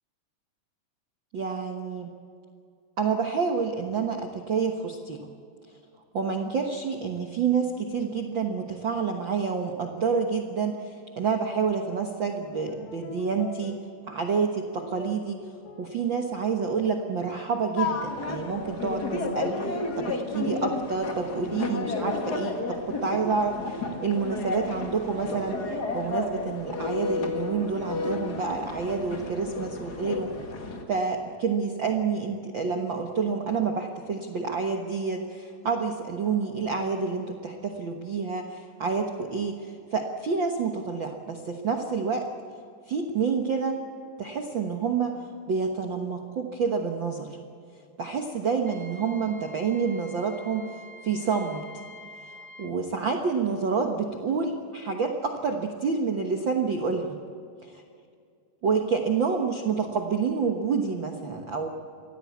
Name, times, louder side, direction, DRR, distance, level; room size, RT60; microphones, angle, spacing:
voice 1, 1.3-2.1 3.0-5.3 6.1-13.8 14.1-15.4 15.8-30.3 30.9-42.2 42.9-43.8 44.2-47.4 48.0-50.7 51.0-51.6 52.6-57.2 57.6-57.8 58.6-61.7, right 5 dB, 60° right, 3 dB, 1.2 m, -28 dB
sound 1, 11.9-12.2 12.7-17.2 17.7-27.4, left 3 dB, 80° left, 3.8 m, -47 dB
sound 2, 17.8-30.8, left 3 dB, 35° left, 1.9 m, -32 dB
Wind instrument woodwind instrument, 48.7-52.8, left 1 dB, 15° right, 1.1 m, -47 dB
24.5 x 17.0 x 8.4 m, 2.4 s
omnidirectional pair, 4.1 m